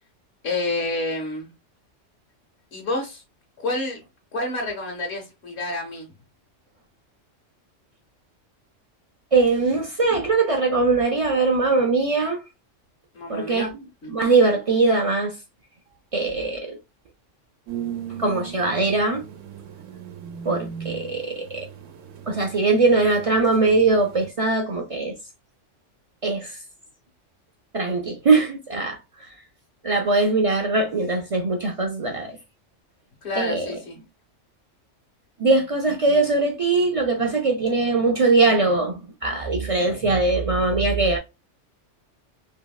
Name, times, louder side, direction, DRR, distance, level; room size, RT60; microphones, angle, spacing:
voice 1, 0.4-1.5 2.7-3.2 3.6-4.0 4.3-6.1 13.1-13.7 14.0-14.1 33.2-34.0, left 2 dB, 65° left, 1.0 m, -29 dB
voice 2, 9.3-12.4 13.3-13.7 14.1-15.4 16.1-16.8 18.2-19.2 20.4-21.7 22.3-25.1 26.2-26.6 27.7-29.3 29.8-32.4 33.4-33.7 35.4-41.2, right 3 dB, 65° right, 0.3 m, -21 dB
sound 1, 17.7-24.3, right 8 dB, 80° right, 1.0 m, -38 dB
3.0 x 2.7 x 2.3 m
omnidirectional pair, 1.3 m